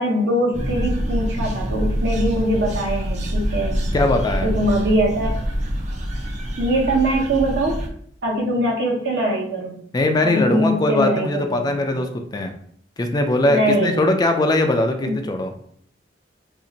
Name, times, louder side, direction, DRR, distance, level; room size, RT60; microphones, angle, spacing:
voice 1, 0.0-3.8 4.4-5.4 6.6-7.8 8.2-9.8 10.2-11.7 13.4-14.1 15.0-15.1, right 1 dB, 75° right, -2 dB, 1.0 m, -22 dB
sound 1, 0.5-7.9, equal, 40° right, 0.5 m, -25 dB
voice 2, 3.9-4.5 9.9-12.5 13.0-15.5, left 2 dB, 25° left, 5 dB, 0.3 m, -20 dB
2.7 x 2.5 x 3.9 m, 0.63 s
head